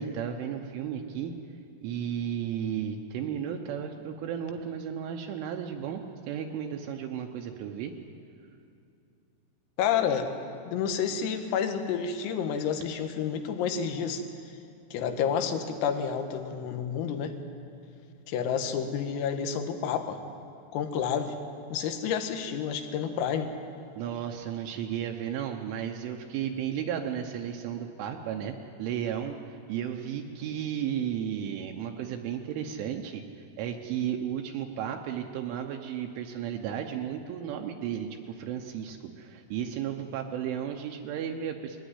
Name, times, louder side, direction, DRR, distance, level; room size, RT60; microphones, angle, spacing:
voice 1, 0.0-1.3 1.8-6.0 6.3-7.9 23.9-33.2 33.6-41.8, right 9 dB, 80° right, 3 dB, 3.2 m, -34 dB
voice 2, 9.8-10.4 10.7-14.2 14.9-17.4 18.3-20.2 20.7-21.4 21.7-23.5, left 7 dB, 80° left, 6 dB, 3.9 m, -29 dB
21.5 x 15.5 x 9.8 m, 2.5 s
omnidirectional pair, 6.0 m